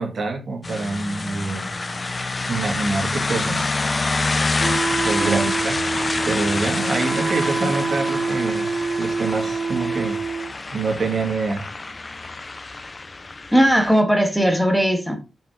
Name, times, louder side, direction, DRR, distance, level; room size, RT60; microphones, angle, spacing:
voice 1, 0.0-1.7 2.5-3.8 5.1-5.8 6.2-8.7 9.0-10.2 10.7-11.6, right 3 dB, 55° right, 2 dB, 2.0 m, -26 dB
sound 1, 0.6-14.0, left 3 dB, 30° left, 0.5 m, -27 dB
Wind instrument woodwind instrument, 4.6-10.5, right 4 dB, 40° right, 0.4 m, -26 dB
voice 2, 5.2-5.5 7.6-7.7 13.5-15.2, equal, ahead, 5 dB, 1.5 m, -18 dB
5.7 x 5.3 x 3.7 m, 0.30 s
wide cardioid pair, 115°, 0 cm